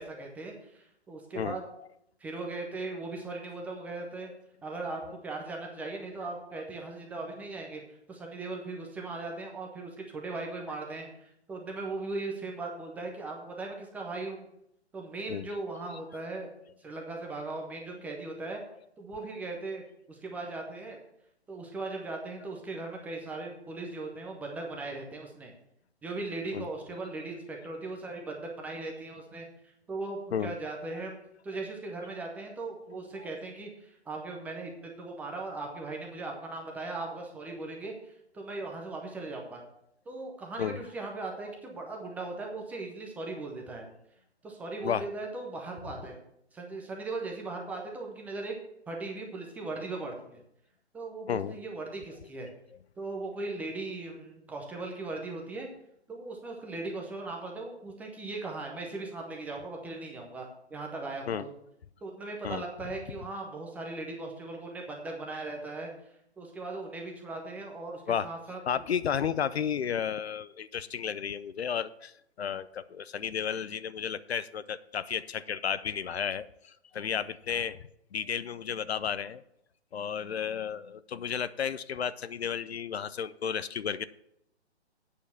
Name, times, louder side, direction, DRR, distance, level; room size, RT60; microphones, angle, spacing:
voice 1, 0.0-1.6 2.2-4.3 4.6-7.8 8.1-14.5 14.9-16.5 16.8-18.6 19.0-19.8 20.1-21.0 21.5-25.5 26.0-29.5 29.9-31.2 31.4-39.6 40.1-43.9 44.4-46.2 46.5-48.5 48.9-50.4 50.9-52.5 53.0-55.7 56.1-61.5 62.0-65.9 66.4-68.6, right 3 dB, 5° right, 0 dB, 0.6 m, -38 dB
voice 2, 44.8-45.2 51.3-51.6 61.3-61.5 62.4-62.6 68.1-68.3 68.7-72.1 72.4-77.8 78.1-79.4 79.9-84.1, left 8 dB, 65° left, 15 dB, 0.6 m, -33 dB
8.5 x 6.4 x 7.0 m, 0.77 s
hypercardioid pair, 145°, 34 cm